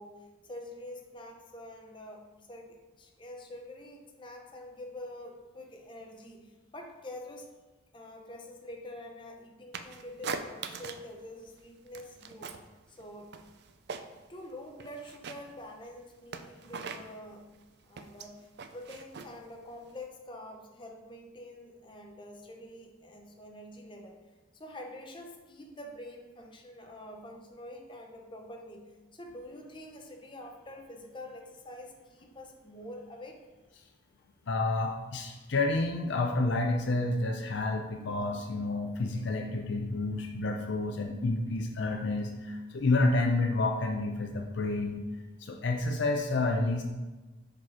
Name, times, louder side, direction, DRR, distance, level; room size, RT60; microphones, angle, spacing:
voice 1, 0.0-7.5 7.9-12.6 12.9-13.4 14.3-17.5 17.8-24.2 24.5-33.4, left 1 dB, 25° left, 2 dB, 0.7 m, -46 dB
sound 1, 9.7-11.1 11.4-12.7 13.0-14.4 14.7-20.1, right 5 dB, 50° right, 0.4 m, -42 dB
voice 2, 34.5-45.1 45.4-46.8, left 2 dB, 55° left, 2 dB, 0.5 m, -29 dB
5.6 x 5.1 x 4.7 m, 1.2 s
head